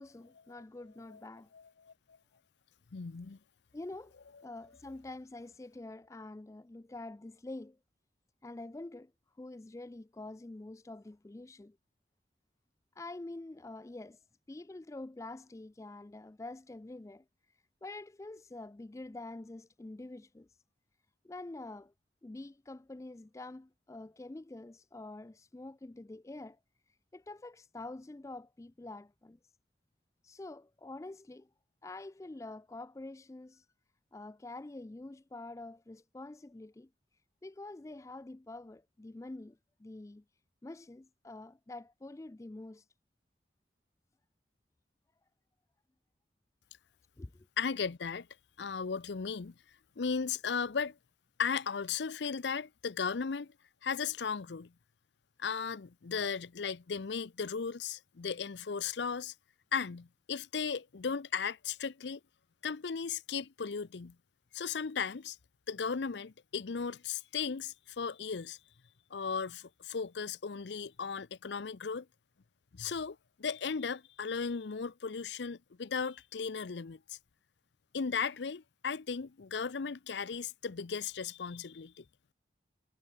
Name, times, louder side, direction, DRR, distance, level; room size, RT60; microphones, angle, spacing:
voice 1, 0.0-1.5 3.7-4.1 4.4-7.8 8.4-9.1 9.4-11.8 13.0-14.2 14.5-17.2 17.8-20.5 21.2-21.9 22.2-26.6 27.1-29.4 30.2-31.5 31.8-33.6 34.1-36.9 37.4-40.2 40.6-42.8 47.2-47.5, left 2 dB, 15° left, 0.3 m, -46 dB
voice 2, 2.9-3.4 47.6-48.3 48.6-49.5 50.0-50.9 51.4-53.5 53.8-54.7 55.4-59.3 59.7-62.2 62.6-64.1 64.5-65.4 65.7-68.6 69.1-72.1 72.7-77.0 77.9-82.0, left 6 dB, 75° left, 0.6 m, -36 dB
head